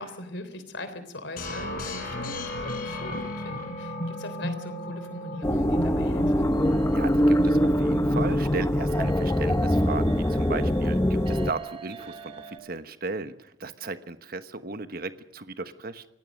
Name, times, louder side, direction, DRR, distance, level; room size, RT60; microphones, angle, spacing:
voice 1, 0.0-6.5, left 1 dB, 70° left, 11 dB, 3.5 m, -40 dB
sound 1, 1.4-8.3, left 1 dB, 50° left, 5.9 m, -35 dB
sound 2, 5.4-11.5, equal, 15° left, 0.8 m, -23 dB
sound 3, 6.2-12.6, right 6 dB, 30° right, 2.2 m, -47 dB
voice 2, 6.9-16.1, right 3 dB, 50° right, 11 dB, 1.2 m, -35 dB
25.5 x 18.0 x 6.5 m, 0.85 s
head